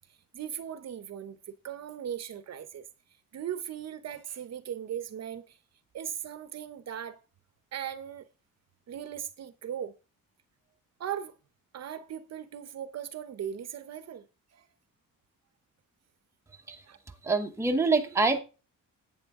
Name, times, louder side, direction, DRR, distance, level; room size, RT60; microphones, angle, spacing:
voice 1, 0.1-1.4 1.6-2.9 3.3-5.6 5.9-7.2 7.7-8.3 8.9-9.9 11.0-11.4 11.7-14.2 14.5-14.7 16.9-17.0, right 9 dB, 50° right, 0.8 m, -38 dB
voice 2, 16.7-18.4, right 3 dB, 10° right, 0.9 m, -27 dB
11.0 x 8.8 x 3.6 m
cardioid pair, 175°, 34 cm